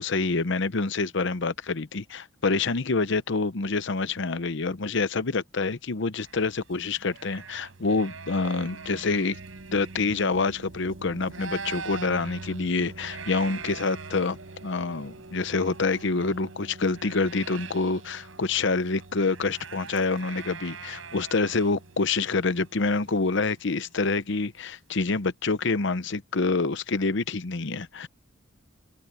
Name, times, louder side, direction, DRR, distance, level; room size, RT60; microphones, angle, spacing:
voice 1, 0.0-9.4 9.7-28.1, left 3 dB, 65° left, 0.8 m, -27 dB
sound 1, 6.2-10.9 11.2-24.1, right 5 dB, 85° right, 6.5 m, -44 dB
sound 2, 6.9-23.7, right 2 dB, 65° right, 1.2 m, -47 dB
open air
head